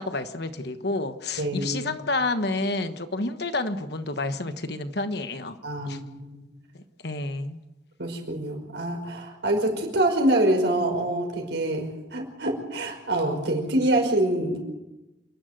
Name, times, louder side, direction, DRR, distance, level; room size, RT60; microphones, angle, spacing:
voice 1, 0.0-5.6 5.8-6.0 7.0-7.6, left 2 dB, 60° left, 9 dB, 1.3 m, -29 dB
voice 2, 1.4-1.9 5.6-6.4 8.0-14.6, right 1 dB, 70° right, 2 dB, 5.3 m, -25 dB
28.5 x 11.5 x 8.1 m, 1.0 s
head